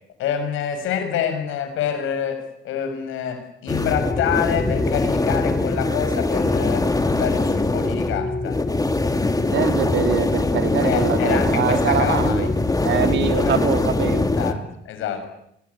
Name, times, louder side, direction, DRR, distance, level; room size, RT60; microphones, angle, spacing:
voice 1, 0.2-8.6 10.8-12.5 13.3-13.5 14.4-15.2, left 8 dB, 90° left, 8 dB, 6.6 m, -27 dB
sound 1, 3.7-14.5, left 2 dB, 20° left, 2.9 m, -22 dB
voice 2, 9.5-12.5 12.8-14.3, right 8 dB, 70° right, 7 dB, 3.7 m, -23 dB
27.0 x 21.0 x 9.9 m, 0.77 s
cardioid pair, 90°, 20 cm